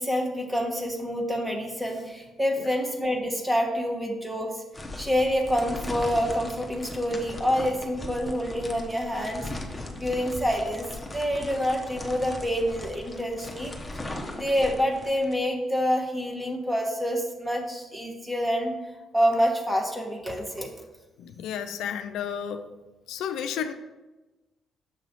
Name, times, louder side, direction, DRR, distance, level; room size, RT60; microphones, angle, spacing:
voice 1, 0.0-4.6 5.0-9.5 10.0-10.9 11.1-13.7 14.3-18.7 19.1-20.7, equal, 10° right, 2 dB, 1.2 m, -27 dB
sound 1, 4.7-15.3, left 1 dB, 10° left, 1.0 m, -38 dB
voice 2, 21.2-22.7 23.1-23.7, left 8 dB, 85° left, 8 dB, 0.4 m, -32 dB
7.0 x 3.0 x 5.7 m, 1.1 s
cardioid pair, 90°, 0 cm